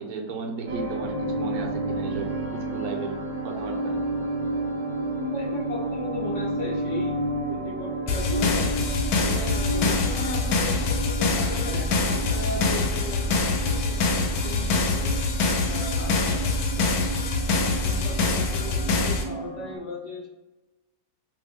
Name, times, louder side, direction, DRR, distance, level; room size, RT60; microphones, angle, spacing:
voice 1, 0.0-2.3 2.5-3.9, right 4 dB, 80° right, 3 dB, 1.1 m, -34 dB
sound 1, 0.7-19.8, right 2 dB, 55° right, 0.4 m, -31 dB
voice 2, 5.2-7.2 7.5-8.7 9.2-15.1 15.7-16.9 17.7-20.3, left 2 dB, 65° left, -1 dB, 0.8 m, -36 dB
sound 2, 8.1-19.2, left 3 dB, 80° left, 1.1 m, -25 dB
2.8 x 2.6 x 3.4 m, 1.1 s
omnidirectional pair, 1.6 m